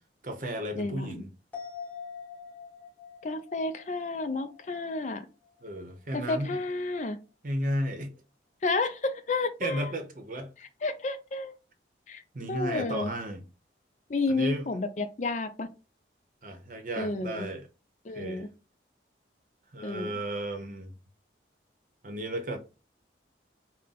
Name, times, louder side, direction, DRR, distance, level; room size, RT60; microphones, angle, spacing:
voice 1, 0.2-1.3 5.6-6.6 7.4-8.1 9.6-10.5 12.3-13.4 14.3-14.6 16.4-17.7 18.1-18.5 19.7-20.9 22.0-22.6, equal, 45° right, 0.8 m, -34 dB
voice 2, 0.7-1.2 3.2-5.3 6.1-7.2 8.6-9.9 10.8-11.5 12.1-12.2 12.5-13.1 14.1-15.7 17.0-17.5 18.0-18.5 19.8-20.1, left 3 dB, 40° left, 0.4 m, -31 dB
sound 1, 1.5-5.2 5.6-5.7, left 6 dB, 10° left, 1.2 m, -45 dB
3.7 x 2.1 x 4.0 m
head